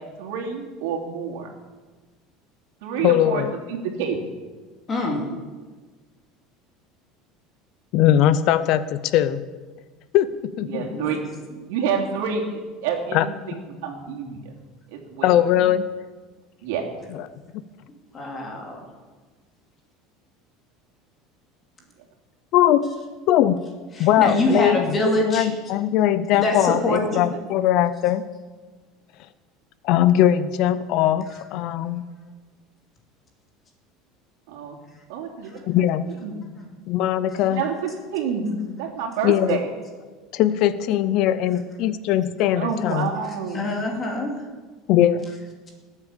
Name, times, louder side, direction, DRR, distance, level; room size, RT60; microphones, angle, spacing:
voice 1, 0.0-1.5 2.8-3.4 3.7-4.2 10.7-11.2 11.7-14.5 14.9-15.6 16.6-16.9 24.2-24.4 26.9-27.0 34.5-34.8 35.1-35.7 36.2-36.4 37.4-39.7 42.5-43.7, right 6 dB, 80° right, 1 dB, 2.9 m, -28 dB
voice 2, 3.0-3.5 7.9-9.4 10.1-10.9 13.1-13.3 15.2-15.9 17.1-17.3 22.5-22.9 23.3-23.6 24.0-24.8 25.2-28.3 29.8-32.0 35.7-36.0 36.9-37.6 39.2-39.6 40.3-43.1 44.9-45.3, left 11 dB, 45° left, 15 dB, 0.6 m, -20 dB
voice 3, 4.9-5.2 10.9-11.2 18.1-18.8 23.9-25.5 26.3-27.3 43.5-44.4, left 2 dB, 20° left, 1 dB, 2.6 m, -24 dB
19.0 x 8.2 x 7.3 m, 1.4 s
cardioid pair, 175°, 0 cm